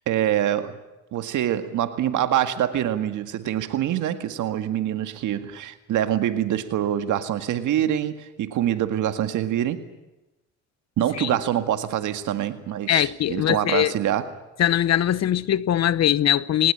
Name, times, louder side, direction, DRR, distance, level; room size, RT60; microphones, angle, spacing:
voice 1, 0.1-0.8 1.1-9.8 11.0-14.3, right 11 dB, 80° right, 2.0 m, -25 dB
voice 2, 12.9-13.9 14.6-16.7, left 11 dB, 60° left, 0.8 m, -21 dB
21.5 x 19.5 x 9.9 m
cardioid pair, 90°, 30 cm